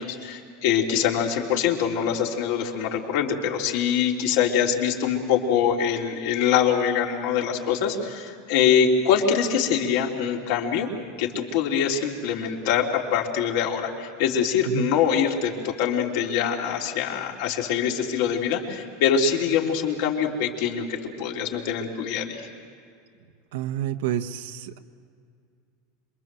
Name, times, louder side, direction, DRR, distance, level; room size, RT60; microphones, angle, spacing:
voice 1, 0.0-10.9 11.2-22.5, left 7 dB, 65° left, -1 dB, 3.5 m, -24 dB
voice 2, 23.5-24.8, right 11 dB, 75° right, 8 dB, 1.2 m, -29 dB
27.5 x 23.0 x 7.7 m, 2.3 s
supercardioid pair, 160°, 0 cm